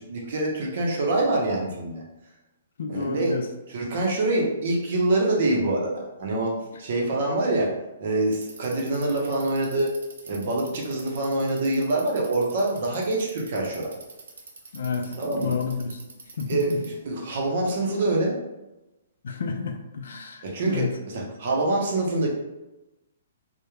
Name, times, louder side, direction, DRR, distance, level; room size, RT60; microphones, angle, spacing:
voice 1, 0.0-2.0 2.9-3.4 3.7-9.9 10.3-14.0 15.0-15.6 16.5-18.3 20.4-22.3, right 2 dB, 45° right, -1 dB, 0.6 m, -25 dB
voice 2, 2.8-3.4 14.7-16.0 16.4-16.6 19.2-20.9, left 5 dB, 65° left, 4 dB, 0.4 m, -30 dB
Bicycle, 8.2-17.0, right 4 dB, 85° right, 0.6 m, -45 dB
2.3 x 2.0 x 3.0 m, 0.99 s
hypercardioid pair, 170°, 0 cm